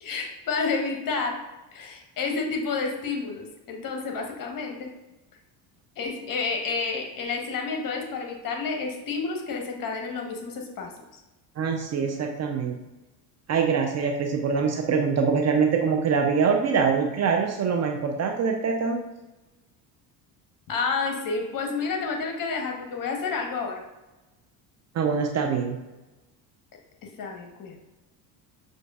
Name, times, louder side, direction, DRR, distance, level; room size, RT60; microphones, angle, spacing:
voice 1, 0.0-1.4 1.7-4.9 6.0-10.9 20.7-23.8 27.2-27.8, left 4 dB, 45° left, 2 dB, 0.9 m, -30 dB
voice 2, 11.6-12.8 13.5-19.0 24.9-25.8, right 5 dB, 35° right, 3 dB, 0.4 m, -24 dB
6.1 x 2.5 x 2.3 m, 1.1 s
supercardioid pair, 80°, 47 cm